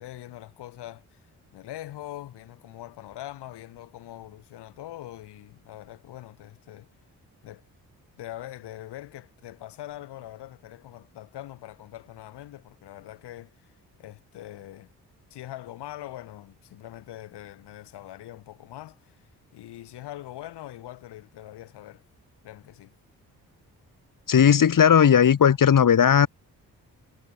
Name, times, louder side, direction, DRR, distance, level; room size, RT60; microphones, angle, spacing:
voice 1, 0.0-6.9 7.4-7.6 8.2-14.9 15.3-22.0 22.4-22.9, left 14 dB, 85° left, 5.5 m, -42 dB
voice 2, 24.3-26.3, left 8 dB, 55° left, 1.6 m, -17 dB
supercardioid pair, 45°, 40 cm